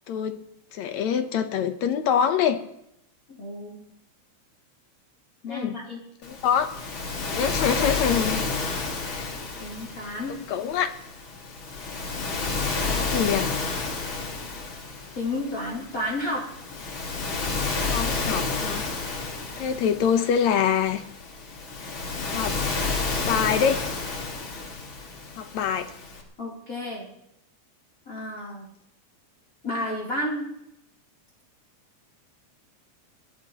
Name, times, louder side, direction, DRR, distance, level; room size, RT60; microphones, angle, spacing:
voice 1, 0.1-0.4 0.7-2.6 5.5-5.8 6.2-6.7 7.3-8.4 9.1-9.4 10.3-10.9 12.8-13.5 17.9-18.8 19.6-21.0 22.2-22.6 23.3-23.8 25.4-25.9, left 8 dB, 70° left, 8 dB, 2.2 m, -25 dB
voice 2, 3.3-3.9 5.4-6.0 9.6-10.3 12.9-13.4 15.1-16.5 26.4-27.1 28.1-28.7 29.6-30.5, left 1 dB, 30° left, -3 dB, 3.8 m, -31 dB
Waves surf, 6.2-26.2, left 3 dB, 45° left, 2.7 m, -31 dB
22.5 x 18.5 x 3.0 m, 0.78 s
omnidirectional pair, 3.4 m